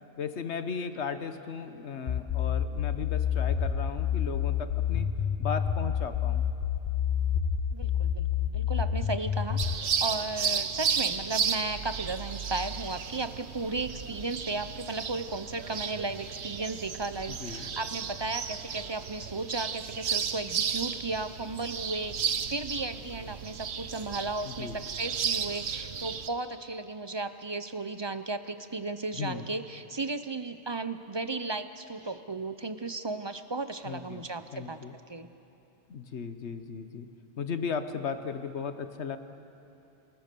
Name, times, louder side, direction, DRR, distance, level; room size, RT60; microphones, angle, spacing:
voice 1, 0.2-5.1 5.4-6.4 17.3-17.7 24.4-24.8 29.1-29.5 33.8-35.0 35.9-37.1 37.4-39.2, left 6 dB, 85° left, 9 dB, 1.4 m, -36 dB
sound 1, 2.1-9.7, left 9 dB, 45° left, 0.9 m, -28 dB
voice 2, 7.7-34.8 35.1-35.3, right 3 dB, 30° right, 11 dB, 0.6 m, -35 dB
sound 2, 9.6-26.3, right 7 dB, 75° right, 1.2 m, -34 dB
29.5 x 19.0 x 6.9 m, 2.8 s
omnidirectional pair, 1.1 m